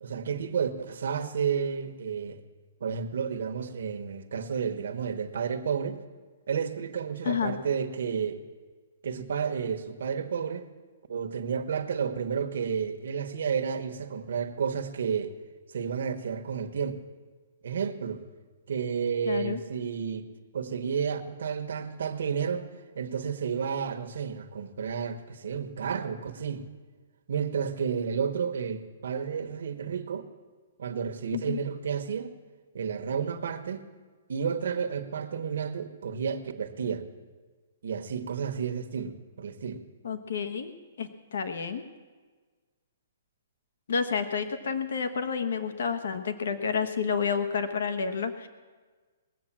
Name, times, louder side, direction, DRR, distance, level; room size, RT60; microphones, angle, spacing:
voice 1, 0.0-2.4 2.8-6.0 6.5-8.4 9.0-10.7 11.1-15.4 15.7-17.0 17.6-18.2 18.7-20.3 20.5-22.6 22.9-26.7 27.3-30.3 30.8-32.4 32.7-33.8 34.3-37.1 37.8-39.8, right 6 dB, 65° right, 5 dB, 1.2 m, -31 dB
voice 2, 7.2-7.6 19.2-19.6 31.3-31.6 40.0-41.8 43.9-48.5, left 6 dB, 70° left, 8 dB, 1.2 m, -30 dB
19.5 x 7.7 x 7.5 m, 1.4 s
hypercardioid pair, 175°, 0 cm